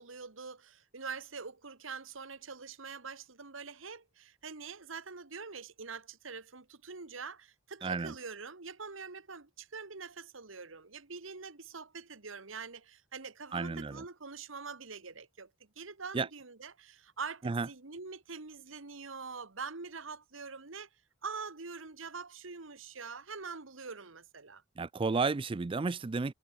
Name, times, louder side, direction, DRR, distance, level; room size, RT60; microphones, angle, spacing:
voice 1, 0.0-15.5 15.8-20.9 21.2-24.6, right 5 dB, 85° right, 1.7 m, -44 dB
voice 2, 7.8-8.1 13.5-14.0 16.1-16.3 17.4-17.7 24.8-26.3, right 4 dB, 25° right, 0.4 m, -32 dB
head